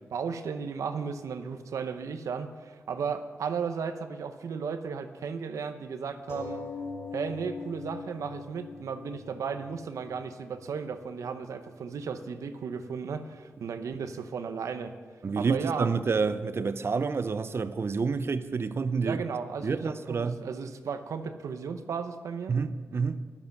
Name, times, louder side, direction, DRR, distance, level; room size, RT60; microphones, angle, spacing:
voice 1, 0.1-6.6 7.1-14.9 15.4-15.9 19.0-22.5, right 6 dB, 90° right, 0.9 m, -35 dB
sound 1, 6.3-11.3 12.0-12.1 12.4-12.5, left 4 dB, 55° left, 4.0 m, -41 dB
voice 2, 15.2-19.2 19.6-20.4 22.5-23.3, right 5 dB, 50° right, 0.7 m, -28 dB
13.0 x 12.0 x 6.0 m
cardioid pair, 75°, 5 cm